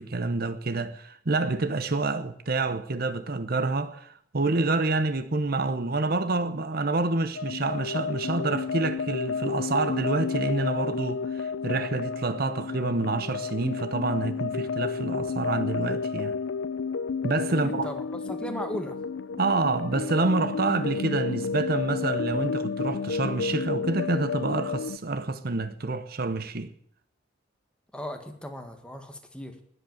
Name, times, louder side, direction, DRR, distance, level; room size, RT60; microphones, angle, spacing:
voice 1, 0.0-16.4 17.2-17.9 19.4-26.7, right 3 dB, 50° right, 0.9 m, -28 dB
sound 1, 7.3-25.0, left 5 dB, 90° left, 0.5 m, -31 dB
voice 2, 17.6-19.0 27.9-29.6, equal, 5° left, 1.8 m, -37 dB
20.5 x 8.2 x 7.9 m
head